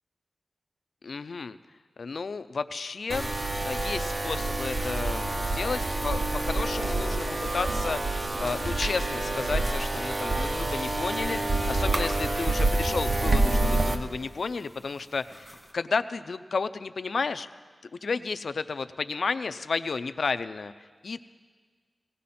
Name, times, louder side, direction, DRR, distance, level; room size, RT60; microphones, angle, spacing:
voice 1, 1.0-1.6 2.0-7.3 7.5-17.5 18.0-20.7 21.0-21.2, left 4 dB, 75° left, 12 dB, 0.5 m, -32 dB
sound 1, 3.1-14.0, right 2 dB, 50° right, 1.1 m, -27 dB
sound 2, 9.1-15.7, right 1 dB, 30° right, 2.0 m, -45 dB
19.5 x 16.5 x 4.3 m, 1.6 s
wide cardioid pair, 105°, 0 cm